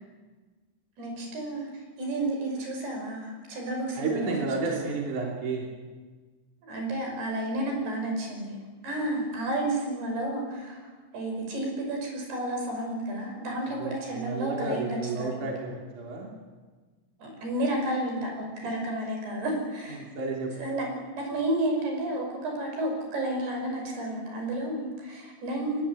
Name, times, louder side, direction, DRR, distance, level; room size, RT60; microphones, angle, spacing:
voice 1, 1.0-1.7 2.0-4.3 6.6-8.6 8.8-15.3 17.2-18.3 18.6-20.1 20.6-25.8, right 1 dB, 80° right, 2 dB, 7.6 m, -31 dB
voice 2, 4.0-5.7 13.8-16.3 18.6-18.7 20.0-20.5, right 3 dB, 50° right, 0 dB, 4.5 m, -31 dB
23.0 x 20.0 x 8.8 m, 1.4 s
omnidirectional pair, 4.6 m